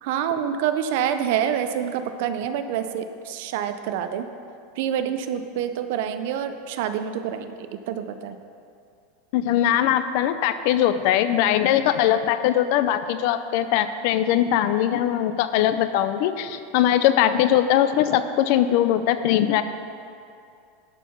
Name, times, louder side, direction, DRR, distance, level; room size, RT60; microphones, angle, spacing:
voice 1, 0.0-4.3 4.8-8.4, right 9 dB, 50° right, 9 dB, 0.5 m, -27 dB
voice 2, 9.3-19.6, left 11 dB, 45° left, 11 dB, 0.4 m, -21 dB
11.5 x 4.6 x 5.6 m, 2.5 s
supercardioid pair, 180°, 0 cm